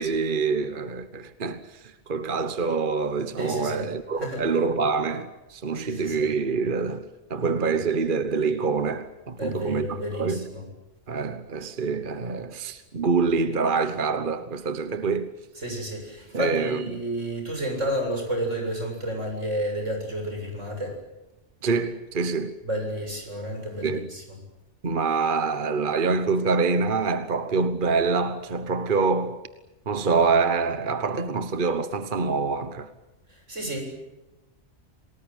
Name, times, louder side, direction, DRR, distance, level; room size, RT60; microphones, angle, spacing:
voice 1, 0.0-10.5 11.1-15.3 16.3-17.0 21.6-22.5 23.8-24.1 24.8-29.4 29.9-32.9, right 4 dB, 45° right, 1.3 m, -26 dB
voice 2, 3.4-3.8 4.2-4.4 5.8-6.3 9.4-10.6 15.6-20.9 22.6-24.2 33.5-33.8, equal, 85° right, 7.9 m, -31 dB
28.0 x 19.0 x 9.2 m
omnidirectional pair, 1.2 m